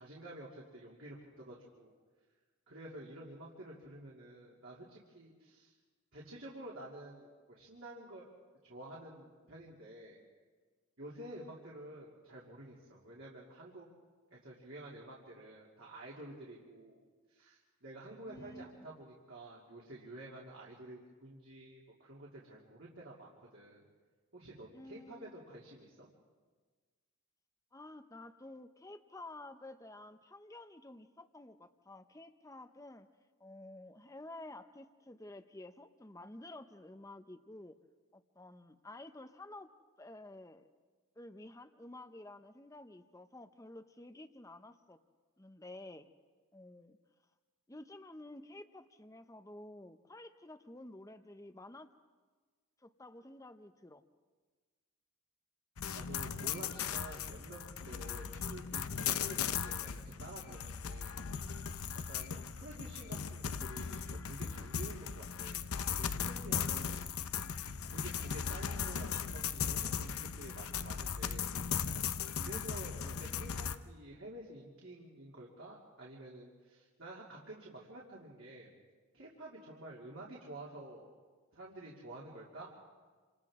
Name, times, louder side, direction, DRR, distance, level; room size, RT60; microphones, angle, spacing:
voice 1, 0.0-1.9 2.7-5.7 6.1-8.3 8.6-10.2 11.0-13.9 14.3-17.0 17.3-23.8 24.3-26.1 55.9-61.6 62.1-67.0 67.9-71.5 71.9-72.1 72.4-78.7 79.1-81.1 81.5-82.7, right 1 dB, 60° right, -5 dB, 2.8 m, -50 dB
voice 2, 18.3-18.9 24.7-25.4 27.7-33.1 33.4-37.8 38.1-39.7 40.0-40.7 41.2-45.0 45.4-46.1 46.5-47.0 47.7-51.9 52.8-54.0 66.7-67.3 72.3-72.7, left 1 dB, 15° left, 9 dB, 0.7 m, -51 dB
sound 1, 55.8-73.8, left 7 dB, 80° left, 0.8 m, -38 dB
28.5 x 26.5 x 3.7 m, 1.4 s
head